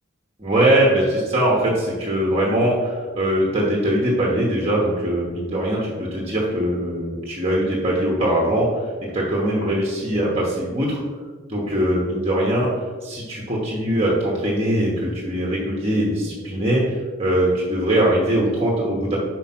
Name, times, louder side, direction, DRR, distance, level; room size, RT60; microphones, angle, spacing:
voice 1, 0.4-8.7 9.0-11.0 11.5-12.7 13.0-19.2, right 1 dB, 30° right, -4 dB, 1.1 m, -21 dB
4.9 x 4.6 x 5.9 m, 1.5 s
head